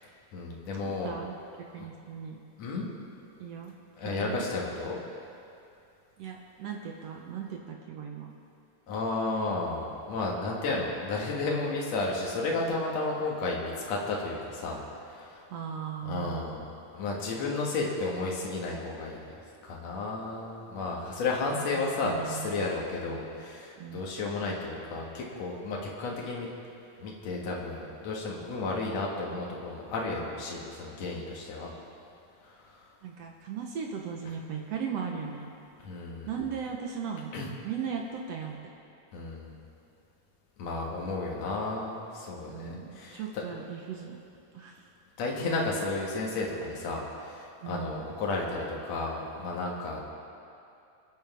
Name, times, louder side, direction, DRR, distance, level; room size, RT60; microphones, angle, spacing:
voice 1, 0.3-1.1 1.8-1.9 2.6-2.9 4.0-5.0 8.9-15.5 16.1-16.6 16.9-19.3 19.6-26.5 27.0-31.7 32.4-32.9 35.8-36.3 37.3-37.5 39.1-39.5 40.6-43.2 45.2-50.0, left 3 dB, 55° left, -2 dB, 2.7 m, -33 dB
voice 2, 0.8-1.3 1.7-2.4 3.4-3.7 4.0-4.5 6.2-8.3 15.5-16.6 21.5-24.0 33.0-35.5 36.3-38.6 42.5-44.2 44.5-44.9 47.6-48.1, right 7 dB, 65° right, 1 dB, 1.6 m, -38 dB
27.0 x 9.3 x 3.5 m, 2.6 s
omnidirectional pair, 3.8 m